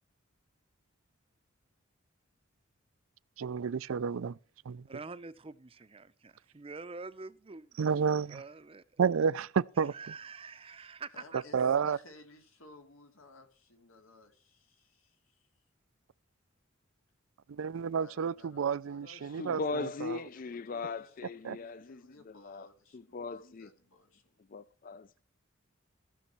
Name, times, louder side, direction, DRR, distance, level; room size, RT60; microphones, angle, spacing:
voice 1, 3.4-4.4 4.7-4.8 7.8-8.4 9.0-9.9 11.5-12.0 17.5-20.2 21.4-21.6, right 6 dB, 80° right, 0.4 m, -30 dB
voice 2, 4.9-7.8 8.3-9.0 9.8-11.4, right 4 dB, 25° right, 0.6 m, -46 dB
voice 3, 10.7-15.5 18.0-19.9 20.2-24.4, left 2 dB, 90° left, 2.8 m, -58 dB
voice 4, 19.0-22.7 22.9-23.7 24.5-25.2, left 4 dB, 40° left, 0.4 m, -39 dB
15.5 x 6.4 x 4.5 m
head